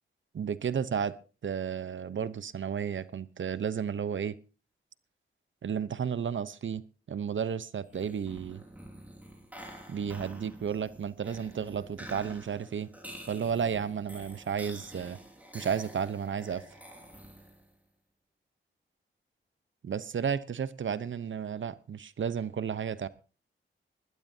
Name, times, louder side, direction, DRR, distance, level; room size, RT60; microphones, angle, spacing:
voice 1, 0.3-1.1 1.4-4.4 5.6-8.6 9.9-12.9 13.3-15.2 15.5-16.6 19.8-23.1, right 7 dB, 65° right, 15 dB, 0.8 m, -33 dB
sound 1, 7.8-17.7, equal, 5° right, 4.9 m, -48 dB
20.0 x 13.0 x 2.8 m, 0.35 s
cardioid pair, 70°, 21 cm